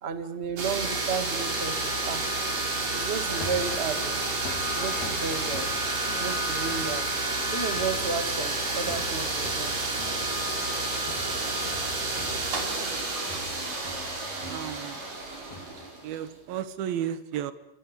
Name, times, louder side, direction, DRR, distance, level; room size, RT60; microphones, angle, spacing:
voice 1, 0.0-2.3 2.9-4.2 4.7-5.7 6.1-7.0 7.5-9.8, right 5 dB, 30° right, 10 dB, 1.2 m, -33 dB
sound 1, 0.6-16.3, right 2 dB, 65° right, 6.5 m, -30 dB
sound 2, 3.3-15.9, left 4 dB, 75° left, 4.5 m, -43 dB
voice 2, 12.8-13.5 14.5-15.0 16.0-17.5, right 10 dB, 85° right, 14 dB, 3.1 m, -34 dB
29.5 x 23.0 x 8.2 m, 0.88 s
omnidirectional pair, 4.1 m